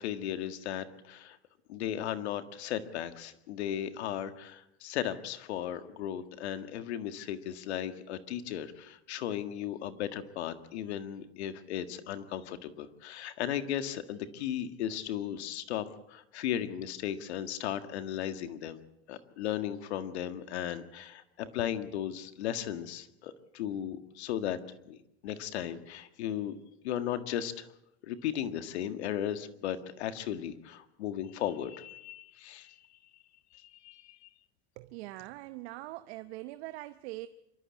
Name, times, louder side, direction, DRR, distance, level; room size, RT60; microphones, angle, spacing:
voice 1, 0.0-1.4 1.7-18.8 19.1-24.6 24.9-25.0 25.2-26.5 26.8-27.7 28.0-32.8 33.5-34.3, left 10 dB, 85° left, 1.8 m, -36 dB
voice 2, 34.8-37.3, right 18 dB, 70° right, 1.0 m, -42 dB
25.5 x 13.5 x 8.5 m
supercardioid pair, 115°, 32 cm